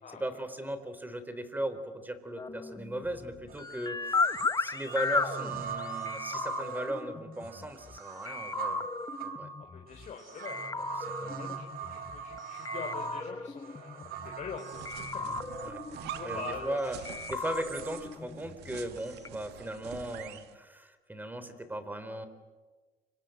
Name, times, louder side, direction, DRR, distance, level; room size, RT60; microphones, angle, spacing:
voice 1, 0.2-4.3 4.6-8.9 9.2-9.5 11.0-11.4 15.2-15.8 16.2-17.0 17.3-22.3, right 1 dB, 10° right, 11 dB, 3.8 m, -37 dB
sound 1, 2.4-8.0 8.3-10.1 10.5-12.4 12.7-14.6 14.9-16.7 17.1-19.0 19.3-19.4, left 4 dB, 20° left, 1.1 m, -36 dB
sound 2, 3.5-3.6 4.1-18.0, right 6 dB, 60° right, 3.7 m, -41 dB
voice 2, 9.6-14.9 16.0-16.8 17.1-17.2, left 6 dB, 45° left, 3 dB, 4.5 m, -44 dB
sound 3, 14.7-20.5, right 11 dB, 85° right, 2.1 m, -47 dB
29.0 x 26.0 x 7.9 m, 1.3 s
cardioid pair, 110°, 17 cm